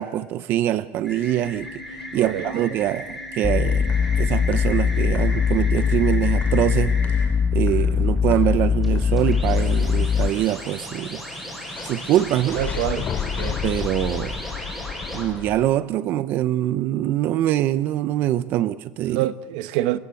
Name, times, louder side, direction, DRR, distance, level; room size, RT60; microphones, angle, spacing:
voice 1, 0.0-1.7 2.1-3.9 4.2-7.0 7.5-11.2 11.8-12.6 13.6-14.4 15.1-19.2, right 13 dB, 50° right, 0.7 m, -24 dB
sound 1, 1.0-7.3 8.8-15.2, left 1 dB, 5° right, 7.7 m, -35 dB
voice 2, 2.2-2.7 12.5-13.1 13.4-13.6 18.5-18.6 19.1-20.0, right 14 dB, 85° right, 1.2 m, -26 dB
sound 2, 3.4-10.3, left 6 dB, 20° left, 1.0 m, -21 dB
sound 3, 3.7-10.6 11.7-15.7, left 7 dB, 35° left, 2.5 m, -34 dB
29.5 x 17.5 x 8.3 m
cardioid pair, 155°, 5 cm